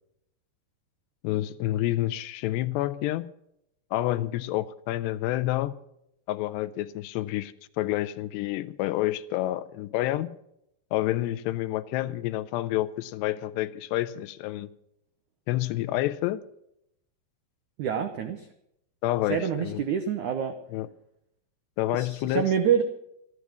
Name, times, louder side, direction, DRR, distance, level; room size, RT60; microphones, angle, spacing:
voice 1, 1.2-3.3 3.9-5.8 6.3-10.3 10.9-14.7 15.5-16.4 19.0-19.8 20.7-20.9 21.8-22.5, left 15 dB, 85° left, 2.8 m, -28 dB
voice 2, 17.8-18.4 19.3-20.5 21.9-22.8, right 8 dB, 85° right, 1.7 m, -26 dB
13.5 x 11.0 x 6.1 m
omnidirectional pair, 4.8 m